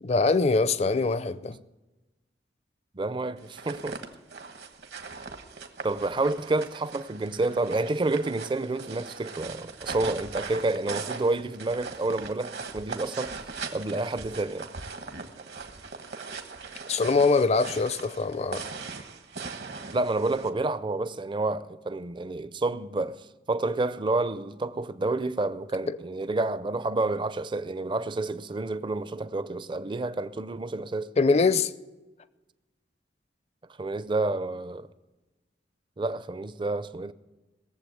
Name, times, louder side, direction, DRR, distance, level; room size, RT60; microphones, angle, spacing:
voice 1, 0.0-1.6 16.9-18.7 25.9-26.0 31.2-31.7, left 4 dB, 35° left, 0.5 m, -23 dB
voice 2, 2.9-4.0 5.8-13.4 13.7-14.7 19.9-31.1 33.8-34.9 36.0-37.1, right 2 dB, 25° right, 0.5 m, -29 dB
sound 1, 3.4-20.5, right 4 dB, 65° right, 1.2 m, -40 dB
18.5 x 7.4 x 7.7 m
head